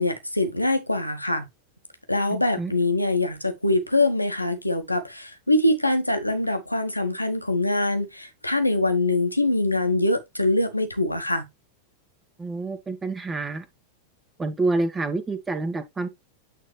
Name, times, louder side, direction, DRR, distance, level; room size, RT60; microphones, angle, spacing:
voice 1, 0.0-1.5 2.1-11.5, left 2 dB, 85° left, 1.3 m, -23 dB
voice 2, 2.3-2.7 12.4-13.6 14.4-16.1, right 3 dB, 15° right, 1.3 m, -28 dB
9.0 x 4.0 x 3.3 m
figure-of-eight pair, 90°, 0 cm